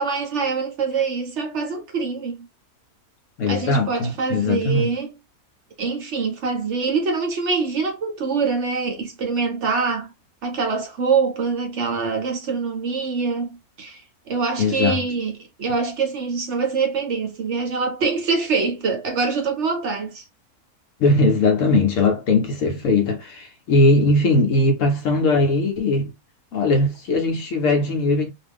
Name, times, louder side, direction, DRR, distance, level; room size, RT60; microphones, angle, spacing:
voice 1, 0.0-2.4 3.5-5.1 5.8-10.1 10.4-20.2, right 4 dB, 55° right, 0.9 m, -24 dB
voice 2, 3.4-5.0 14.6-15.0 21.0-26.1 26.5-28.3, left 2 dB, 65° left, 0.8 m, -19 dB
2.5 x 2.3 x 3.4 m
omnidirectional pair, 1.6 m